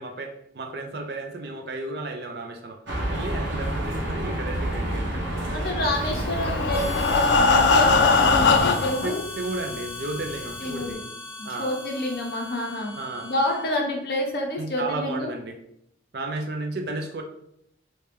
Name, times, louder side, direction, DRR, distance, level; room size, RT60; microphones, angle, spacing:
voice 1, 0.0-2.8 3.1-5.4 9.0-11.0 11.4-11.7 13.0-13.3 14.6-15.6 16.1-17.2, right 2 dB, 60° right, 3 dB, 0.5 m, -33 dB
sound 1, 2.9-8.6, right 1 dB, 90° right, 1.0 m, -29 dB
voice 2, 5.5-9.2 10.6-11.0 11.4-12.9 13.2-15.3, left 1 dB, 55° left, 1 dB, 0.7 m, -28 dB
Breathing, 6.2-9.1 9.9-10.0 10.3-10.4 10.9-11.0, left 4 dB, 80° left, 0.4 m, -20 dB
Harmonica, 6.7-14.0, left 2 dB, 10° right, 0.6 m, -38 dB
3.3 x 2.8 x 3.2 m, 0.76 s
head